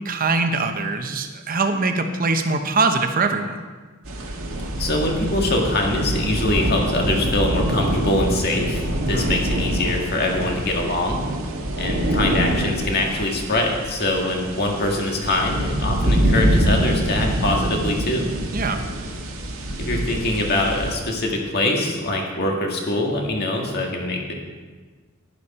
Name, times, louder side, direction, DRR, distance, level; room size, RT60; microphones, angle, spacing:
voice 1, 0.0-3.6 9.1-9.4 18.5-18.8, right 3 dB, 45° right, 6 dB, 0.9 m, -22 dB
sound 1, 4.0-21.0, right 1 dB, 85° right, 1.7 m, -25 dB
voice 2, 4.8-11.2 11.8-18.3 19.8-24.3, left 1 dB, 50° left, 1 dB, 1.8 m, -23 dB
11.5 x 10.5 x 4.3 m, 1.4 s
head